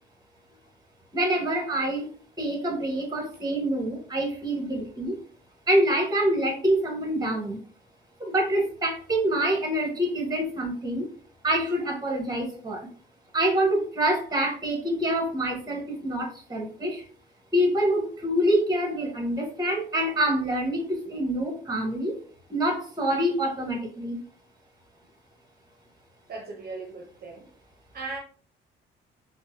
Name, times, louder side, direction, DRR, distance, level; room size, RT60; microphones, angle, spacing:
voice 1, 1.1-2.1 2.4-5.2 5.7-7.6 8.2-11.1 11.4-12.9 13.3-17.0 17.5-22.1 22.5-24.2, right 1 dB, 20° right, 1.3 m, -26 dB
voice 2, 26.3-27.5 27.9-28.2, right 3 dB, 50° right, 0.7 m, -37 dB
3.8 x 2.2 x 2.7 m
cardioid pair, 90°, 20 cm